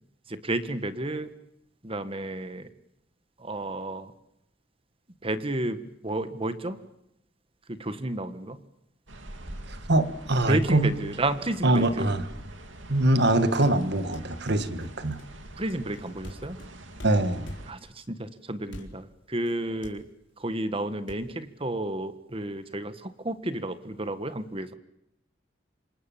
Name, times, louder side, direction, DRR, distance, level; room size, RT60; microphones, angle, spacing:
voice 1, 0.3-1.3 1.8-2.7 3.4-4.1 5.2-6.8 7.7-8.6 10.5-12.1 15.6-16.6 17.7-20.1 20.4-24.7, right 1 dB, 30° right, 11 dB, 1.5 m, -31 dB
sound 1, 9.1-17.7, right 1 dB, 85° right, 2.5 m, -44 dB
voice 2, 9.7-10.9 11.6-12.2 12.9-15.2 17.0-17.5, right 1 dB, 60° right, 10 dB, 1.8 m, -23 dB
sound 2, 11.7-12.0 13.6-18.0 18.6-19.2 19.5-19.6 19.8-20.4 21.1-21.2, equal, 70° left, 4.3 m, -45 dB
27.5 x 26.0 x 7.4 m, 0.83 s
head